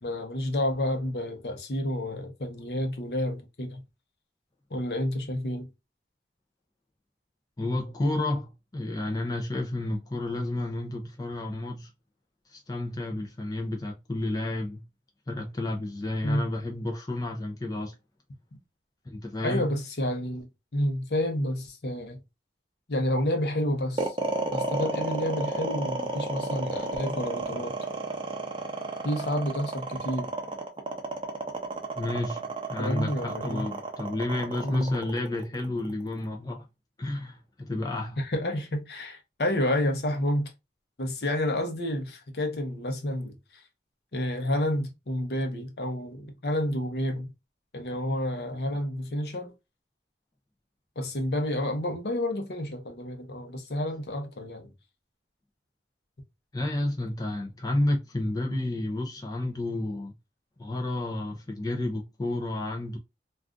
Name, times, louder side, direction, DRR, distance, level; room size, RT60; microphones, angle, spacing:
voice 1, 0.0-3.8 4.7-5.7 16.2-16.4 19.4-20.5 20.7-22.2 22.9-24.2 24.5-27.7 29.0-30.3 32.8-33.6 34.6-35.0 38.2-40.5 41.0-43.6 44.1-47.3 47.7-49.5 51.0-54.7, left 1 dB, 65° left, 0.8 m, -29 dB
voice 2, 7.6-11.9 12.5-14.8 15.3-17.9 19.1-19.7 32.0-36.6 37.0-38.2 56.5-60.1 60.6-63.0, left 1 dB, 20° left, 0.4 m, -31 dB
sound 1, 24.0-36.2, right 2 dB, 30° right, 0.6 m, -32 dB
2.4 x 2.3 x 3.6 m
head